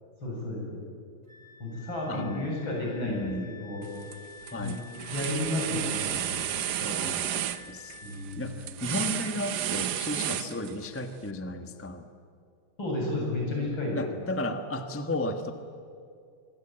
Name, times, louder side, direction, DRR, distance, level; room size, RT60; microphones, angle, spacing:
voice 1, 0.2-0.8 1.6-3.9 4.6-6.3 6.8-7.0 8.0-8.7 10.4-10.6 12.8-14.0, left 2 dB, 65° left, -2 dB, 8.7 m, -33 dB
Wind instrument woodwind instrument, 1.3-8.3, left 6 dB, 35° right, 4.4 m, -49 dB
voice 2, 2.1-2.5 3.0-3.5 4.5-4.8 6.9-8.0 8.4-12.1 13.9-15.5, left 1 dB, 10° left, 7 dB, 1.0 m, -34 dB
sound 1, 3.8-4.2 4.5-11.0, right 11 dB, 60° right, 1.2 m, -32 dB
25.0 x 23.0 x 9.0 m, 2.3 s
omnidirectional pair, 2.3 m